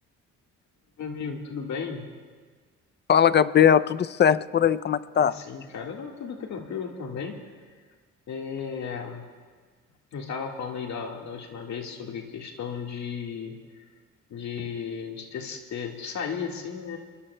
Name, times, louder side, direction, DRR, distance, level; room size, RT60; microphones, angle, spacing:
voice 1, 1.0-2.1 5.2-7.4 8.3-9.3 10.1-13.6 14.3-17.0, left 6 dB, 65° left, 2 dB, 1.7 m, -35 dB
voice 2, 3.1-5.3, left 8 dB, 35° left, 15 dB, 0.4 m, -20 dB
23.5 x 21.5 x 2.2 m, 1.5 s
cardioid pair, 90°, 30 cm